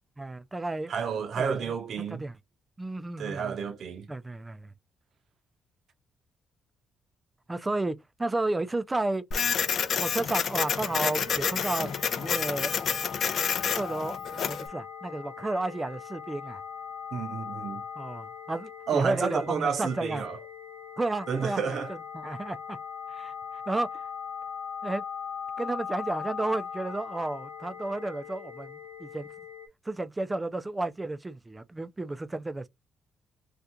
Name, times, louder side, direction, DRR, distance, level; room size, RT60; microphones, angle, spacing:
voice 1, 0.2-0.9 1.4-1.5 2.1-2.4 2.8-3.6 4.1-4.7 7.5-9.2 10.0-12.8 13.7-16.6 18.0-20.2 21.0-22.8 23.1-24.0 24.8-25.0 25.6-29.3 29.9-32.7, right 2 dB, 15° right, 0.5 m, -32 dB
voice 2, 0.9-2.2 3.2-4.1 17.1-17.8 18.9-20.4 21.3-21.9, right 6 dB, 60° right, 0.8 m, -30 dB
Printer, 9.3-14.7, left 7 dB, 55° left, 0.5 m, -29 dB
sound 1, 10.5-29.7, left 7 dB, 90° left, 0.8 m, -40 dB
2.8 x 2.4 x 3.6 m
cardioid pair, 90°, 0 cm